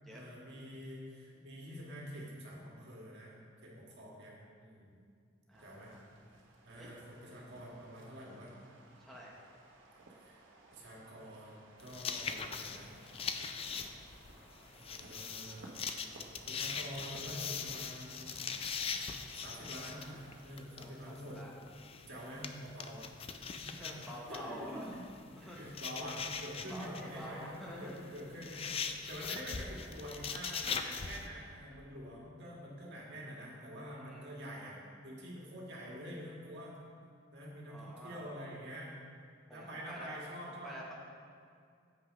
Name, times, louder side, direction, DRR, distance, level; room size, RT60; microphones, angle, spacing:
voice 1, 0.1-3.4 3.6-4.9 5.6-5.9 6.7-8.5 10.2-10.4 10.7-12.9 14.7-15.7 16.5-18.4 19.3-21.4 22.1-34.8 35.0-36.7 37.3-38.9 39.5-40.8, equal, 60° right, -4 dB, 1.9 m, -47 dB
voice 2, 5.5-6.0 6.8-6.9 9.0-9.3 20.4-21.5 23.6-24.9 25.4-25.6 26.7-28.1 33.9-34.3 37.7-38.2 39.5-40.2 40.5-40.9, equal, ahead, -4 dB, 1.0 m, -48 dB
sound 1, 5.5-20.4, right 2 dB, 90° right, 1.1 m, -59 dB
sound 2, 11.8-31.3, left 6 dB, 30° left, 0.4 m, -42 dB
7.6 x 6.1 x 5.1 m, 2.3 s
head